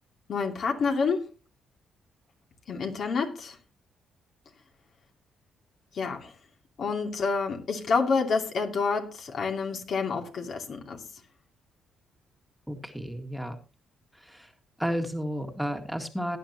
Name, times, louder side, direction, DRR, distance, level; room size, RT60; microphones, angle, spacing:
voice 1, 0.3-1.3 2.7-3.6 5.9-6.3 6.8-11.0, left 4 dB, 60° left, 3 dB, 2.5 m, -28 dB
voice 2, 12.7-13.6 14.1-14.5 14.8-16.4, equal, ahead, 5 dB, 1.9 m, -32 dB
18.0 x 9.7 x 2.9 m, 0.31 s
cardioid pair, 90°, 0 cm